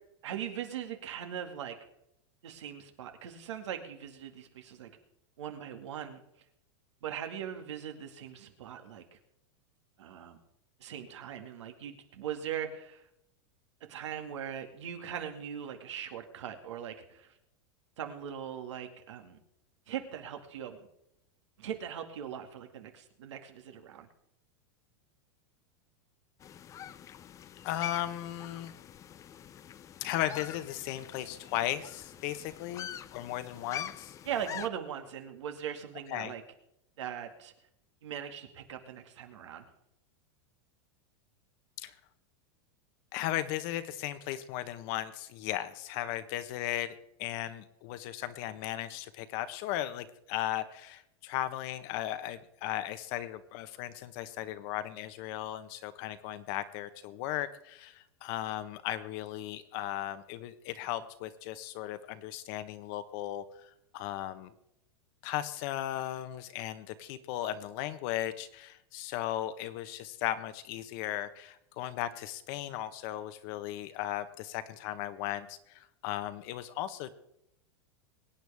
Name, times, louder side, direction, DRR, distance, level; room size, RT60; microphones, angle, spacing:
voice 1, 0.2-1.7 2.4-4.9 5.4-6.2 7.0-9.2 10.0-10.4 10.8-13.0 13.8-17.3 18.0-19.4 19.9-20.9 21.6-24.1 34.3-36.4 37.0-37.5 38.0-39.7, right 9 dB, 90° right, 5 dB, 2.2 m, -40 dB
sound 1, 26.4-34.7, left 9 dB, 20° left, 0.5 m, -45 dB
voice 2, 27.6-28.7 30.0-34.1 36.1-36.3 41.8-41.9 43.1-63.4 63.9-64.5 65.2-77.1, left 13 dB, 50° left, 12 dB, 1.1 m, -36 dB
23.0 x 9.2 x 3.5 m, 0.80 s
supercardioid pair, 145°, 15 cm